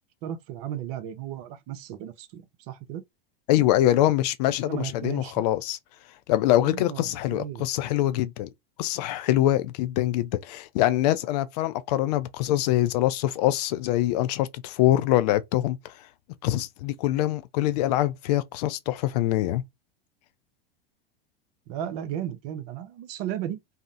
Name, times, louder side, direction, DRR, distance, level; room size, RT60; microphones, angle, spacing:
voice 1, 0.2-3.0 4.6-5.4 6.6-7.7 21.7-23.6, right 10 dB, 40° right, 0.5 m, -35 dB
voice 2, 3.5-5.8 6.3-8.5 8.8-15.9 16.4-19.6, left 14 dB, 45° left, 0.4 m, -24 dB
2.7 x 2.0 x 2.5 m
figure-of-eight pair, 90°, 29 cm